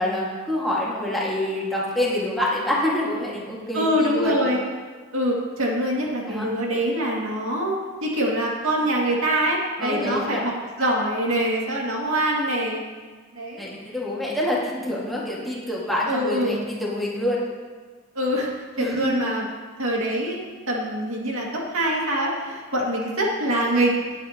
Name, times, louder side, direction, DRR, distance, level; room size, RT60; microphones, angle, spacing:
voice 1, 0.0-4.4 6.3-6.5 9.8-10.4 13.6-17.4 18.8-19.2, left 1 dB, ahead, -6 dB, 1.8 m, -26 dB
voice 2, 3.7-4.6 5.1-10.5 10.8-12.8 13.3-13.6 16.1-16.5 18.2-18.5 18.8-19.5 19.8-20.4 20.7-23.9, right 1 dB, 70° right, -3 dB, 2.2 m, -24 dB
19.0 x 8.3 x 2.9 m, 1.5 s
head